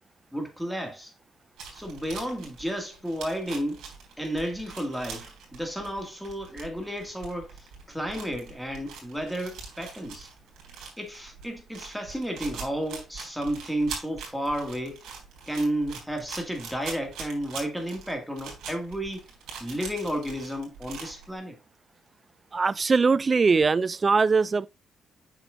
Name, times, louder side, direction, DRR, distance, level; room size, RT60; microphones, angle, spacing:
voice 1, 0.3-1.1 1.7-3.8 4.2-10.3 11.0-15.1 15.5-19.2 19.6-21.6, equal, ahead, 2.3 m, -32 dB
sound 1, 1.6-21.3, right 5 dB, 80° right, 3.5 m, -42 dB
voice 2, 22.5-24.7, right 4 dB, 35° right, 0.4 m, -21 dB
7.7 x 6.2 x 2.6 m
cardioid pair, 90°, 0 cm